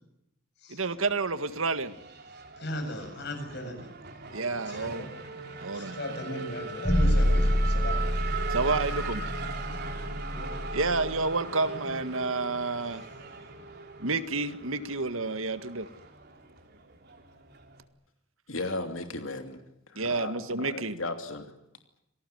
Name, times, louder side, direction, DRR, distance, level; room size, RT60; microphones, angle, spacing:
voice 1, 0.7-1.9 4.3-5.1 5.6-6.2 8.5-9.2 10.7-13.0 14.0-15.9 19.9-21.0, right 3 dB, 90° right, 11 dB, 1.8 m, -30 dB
Race car auto racing / Accelerating revving vroom, 0.9-17.8, right 3 dB, 50° right, 3.9 m, -40 dB
voice 2, 2.6-3.9 4.5-5.1 5.7-8.0 10.3-10.5, left 1 dB, 55° left, 6 dB, 7.6 m, -37 dB
sound 1, 6.8-11.1, equal, 10° left, 7.8 m, -27 dB
voice 3, 18.5-19.6 19.9-21.4, left 2 dB, 75° left, 6 dB, 2.9 m, -35 dB
27.0 x 19.0 x 9.4 m, 0.84 s
head